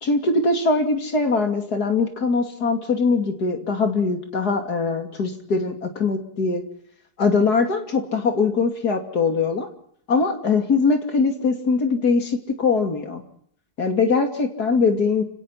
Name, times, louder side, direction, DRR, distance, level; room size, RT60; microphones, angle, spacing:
voice 1, 0.0-6.6 7.2-9.7 10.1-13.2 13.8-15.2, left 4 dB, 70° left, 5 dB, 3.3 m, -21 dB
28.5 x 18.0 x 5.8 m, 0.66 s
omnidirectional pair, 1.8 m